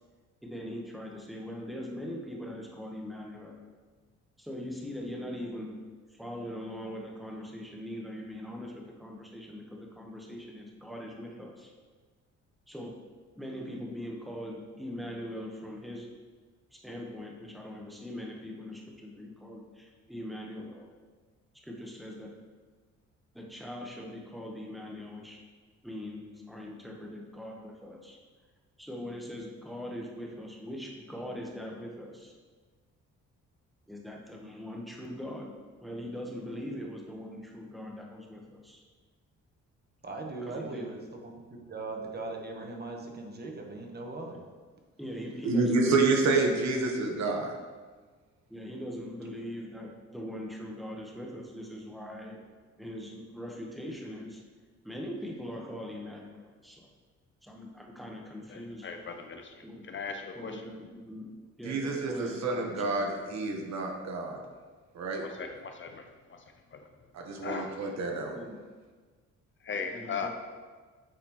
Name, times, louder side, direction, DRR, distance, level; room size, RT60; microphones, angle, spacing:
voice 1, 0.4-3.6 4.4-5.8 6.2-11.7 12.7-12.9 13.3-16.1 16.7-20.9 21.6-22.3 23.3-25.4 25.8-28.2 28.8-32.3 33.9-35.5 35.8-38.8 40.4-40.8 45.0-46.2 47.1-47.3 48.5-52.5 52.8-54.4 54.8-56.9 57.4-58.9 59.6-59.8 60.3-61.3 61.6-62.8 68.3-68.6 69.9-70.3, equal, ahead, -1 dB, 1.1 m, -41 dB
voice 2, 40.0-41.3 41.7-44.4, right 3 dB, 35° right, 1 dB, 1.1 m, -39 dB
voice 3, 45.4-47.5 61.6-64.4 64.9-65.2 67.1-68.4, right 3 dB, 65° right, 1 dB, 1.1 m, -28 dB
voice 4, 58.5-60.6 65.2-66.0 66.3-66.4 66.7-66.9 67.4-67.7 69.6-70.3, left 5 dB, 40° left, 5 dB, 0.6 m, -38 dB
8.8 x 4.1 x 3.0 m, 1.4 s
cardioid pair, 90°, 30 cm